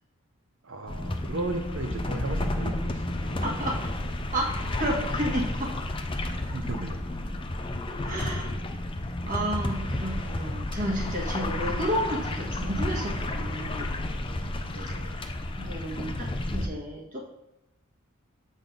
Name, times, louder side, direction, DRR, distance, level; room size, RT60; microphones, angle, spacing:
voice 1, 0.6-3.0 3.3-3.4 6.3-7.0 14.6-15.4, right 2 dB, 70° right, 6 dB, 0.9 m, -36 dB
sound 1, 0.9-16.7, left 1 dB, 25° left, 0.5 m, -31 dB
voice 2, 3.4-3.7 4.3-5.7 8.0-8.5 9.2-14.0 14.7-15.2 15.6-17.2, equal, 40° right, -1 dB, 1.6 m, -32 dB
7.5 x 4.0 x 5.2 m, 0.91 s
head